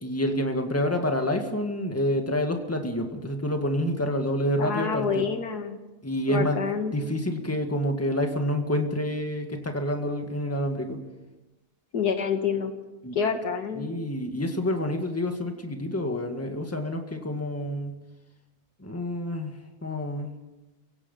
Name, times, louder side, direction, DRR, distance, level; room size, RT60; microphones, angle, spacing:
voice 1, 0.0-5.3 6.0-6.6 6.9-11.0 13.0-13.2 13.8-18.0 18.8-20.3, left 1 dB, 10° left, 4 dB, 1.9 m, -28 dB
voice 2, 4.6-5.8 6.3-6.9 11.9-12.7 13.1-13.9, left 6 dB, 80° left, 6 dB, 2.2 m, -27 dB
29.5 x 16.5 x 5.6 m, 1.1 s
omnidirectional pair, 1.7 m